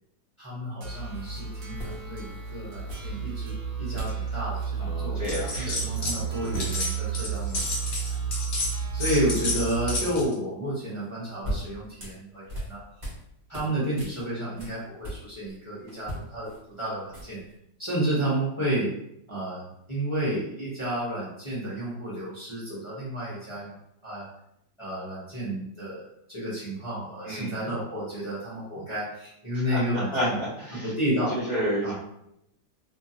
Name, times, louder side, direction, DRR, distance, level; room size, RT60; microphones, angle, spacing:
voice 1, 0.4-3.5 3.8-5.2 5.6-7.6 8.9-12.8 13.5-17.4 17.8-18.9 19.3-23.7 24.0-24.3 24.8-30.4 30.7-31.4 31.8-31.9, right 1 dB, 25° left, -10 dB, 0.6 m, -31 dB
sound 1, 0.8-10.2, right 6 dB, 85° right, 1.3 m, -32 dB
sound 2, 1.1-1.2 1.8-2.4 2.9-3.5 4.0-4.2 4.5-4.7 5.0-5.9 6.5-6.7 7.0-7.2 7.4-8.2 11.0-13.2 13.5-15.6 15.9-17.5, equal, 30° right, 1.1 m, -39 dB
voice 2, 4.8-6.6 27.2-27.5 29.7-30.9 31.3-31.9, equal, 60° right, -9 dB, 0.4 m, -31 dB
sound 3, 5.3-6.2 6.4-10.3, left 2 dB, 55° left, 1.1 m, -31 dB
2.8 x 2.5 x 2.8 m, 0.78 s
omnidirectional pair, 1.9 m